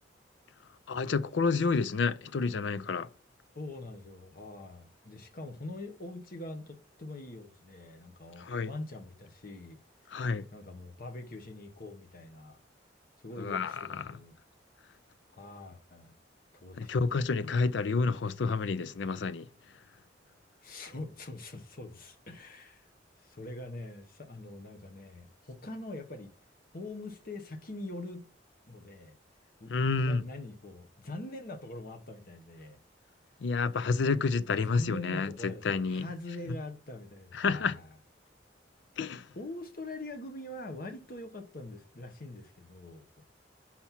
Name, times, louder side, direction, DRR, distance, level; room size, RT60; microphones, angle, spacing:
voice 1, 0.9-3.1 8.4-8.7 10.1-10.5 13.4-14.2 16.8-19.5 29.7-30.2 33.4-36.1 36.5-36.6 37.3-37.8 39.0-39.3, left 4 dB, 70° left, 0.4 m, -29 dB
voice 2, 3.5-9.8 10.5-12.6 13.2-14.3 15.3-16.1 16.5-17.5 20.6-22.9 23.2-26.3 26.7-28.2 28.7-29.1 29.6-32.8 34.6-37.9 39.3-43.1, left 2 dB, 50° left, 1.1 m, -43 dB
5.9 x 4.2 x 5.8 m
head